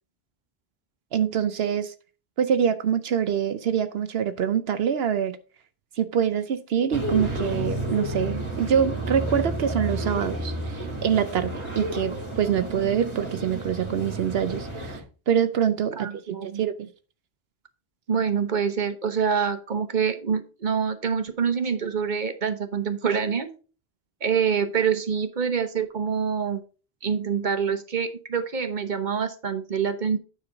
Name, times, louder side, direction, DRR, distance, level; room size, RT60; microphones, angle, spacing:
voice 1, 1.1-1.9 2.4-5.4 6.0-15.0 15.3-16.1 16.5-16.9, right 8 dB, 75° right, 0.9 m, -25 dB
sound 1, 6.9-15.0, right 1 dB, 25° right, 2.0 m, -31 dB
voice 2, 15.9-16.6 18.1-23.5 24.2-26.6 27.0-30.2, right 6 dB, 50° right, 1.1 m, -26 dB
9.6 x 6.3 x 3.9 m
omnidirectional pair, 1.0 m